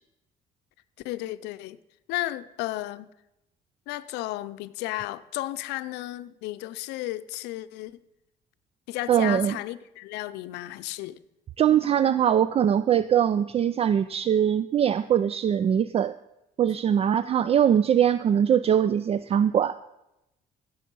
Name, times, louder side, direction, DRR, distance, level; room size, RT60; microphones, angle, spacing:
voice 1, 1.0-1.8 2.1-3.1 3.9-8.0 8.9-11.2, left 16 dB, 90° left, 0.6 m, -33 dB
voice 2, 9.1-9.5 11.6-16.1 16.6-19.8, right 9 dB, 35° right, 0.4 m, -22 dB
15.5 x 6.9 x 5.4 m
cardioid pair, 110°, 17 cm